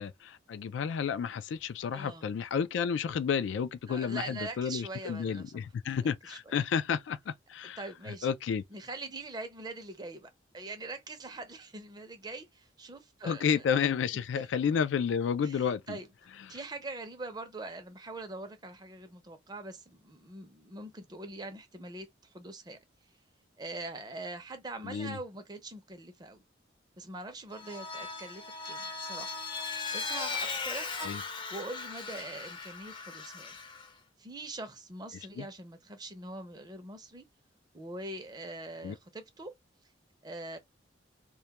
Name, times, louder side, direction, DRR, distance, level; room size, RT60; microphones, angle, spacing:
voice 1, 0.0-7.8 8.2-8.6 13.2-16.0 16.5-16.6 24.8-25.2 31.0-31.2 35.4-35.5 38.8-39.0, left 7 dB, 80° left, 0.3 m, -31 dB
voice 2, 1.9-2.3 3.9-5.7 6.0-6.4 7.8-8.3 8.7-13.6 14.1-14.4 15.4-16.1 16.5-22.8 23.6-26.4 27.0-29.4 29.9-31.1 31.5-33.6 34.2-37.3 37.7-39.5 40.2-40.6, right 2 dB, 20° right, 0.5 m, -43 dB
Vehicle, 27.5-33.9, left 4 dB, 25° left, 0.5 m, -38 dB
2.2 x 2.1 x 2.8 m
head